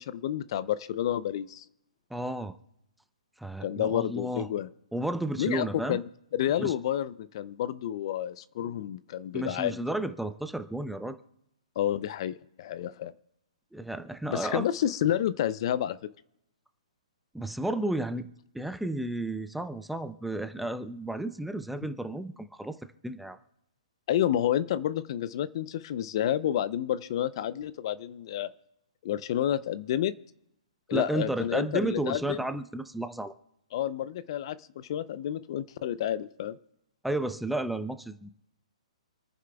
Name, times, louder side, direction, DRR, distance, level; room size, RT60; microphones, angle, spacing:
voice 1, 0.0-1.6 3.6-4.7 5.4-6.0 6.3-9.8 11.8-13.1 14.3-16.1 24.1-28.5 29.0-30.1 30.9-32.4 33.7-36.6, left 11 dB, 45° left, 16 dB, 0.5 m, -30 dB
voice 2, 2.1-2.5 3.4-4.5 4.9-6.0 6.6-6.7 8.6-8.7 9.3-11.2 13.7-14.7 17.3-18.3 18.5-22.8 23.0-23.4 30.9-33.3 37.0-38.3, right 1 dB, ahead, 10 dB, 0.5 m, -32 dB
28.0 x 9.4 x 2.3 m, 0.84 s
hypercardioid pair, 130°, 4 cm